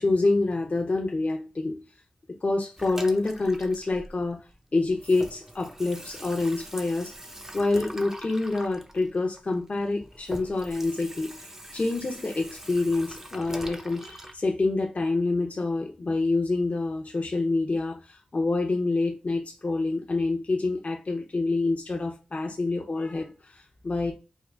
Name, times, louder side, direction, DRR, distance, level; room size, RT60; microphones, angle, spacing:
voice 1, 0.0-1.8 2.4-4.4 4.7-7.1 7.5-11.4 11.7-24.1, left 3 dB, 50° left, 0.6 m, -27 dB
Water tap faucet / Sink (filling or washing), 2.8-4.6 4.9-14.3, right 1 dB, 15° right, 0.5 m, -42 dB
3.6 x 2.3 x 3.3 m
wide cardioid pair, 60°, 3 cm